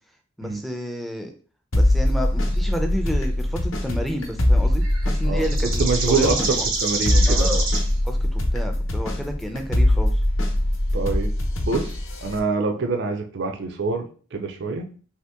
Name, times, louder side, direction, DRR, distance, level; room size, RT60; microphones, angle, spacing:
voice 1, 0.4-1.3 1.7-6.7 7.3-7.7 8.0-10.2 12.7-12.9, equal, ahead, 3 dB, 0.4 m, -31 dB
sound 1, 1.7-12.4, left 1 dB, 75° left, 0.8 m, -22 dB
sound 2, 4.2-4.3 4.8-7.9, right 3 dB, 90° right, 0.9 m, -27 dB
voice 2, 5.8-7.5 10.9-11.3 11.6-14.9, right 4 dB, 60° right, 4 dB, 0.5 m, -25 dB
2.9 x 2.8 x 3.4 m, 0.41 s
head